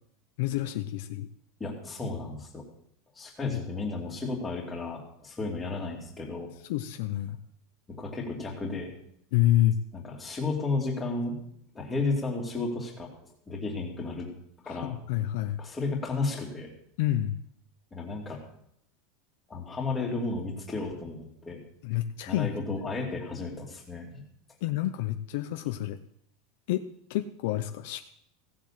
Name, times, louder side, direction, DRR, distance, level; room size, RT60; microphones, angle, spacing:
voice 1, 0.4-1.3 3.4-3.6 6.7-7.4 9.3-9.8 14.7-15.6 17.0-17.4 21.8-22.8 24.6-26.0 26.7-26.8 27.1-28.0, left 14 dB, 55° left, 8 dB, 0.7 m, -28 dB
voice 2, 1.6-2.6 3.2-6.5 7.9-8.9 9.9-11.4 11.7-13.1 13.5-14.3 14.7-14.9 15.6-16.7 17.9-18.4 19.5-21.6 22.3-24.2, left 3 dB, 10° left, -1 dB, 2.6 m, -33 dB
16.5 x 7.5 x 7.4 m, 0.72 s
supercardioid pair, 180°, 0 cm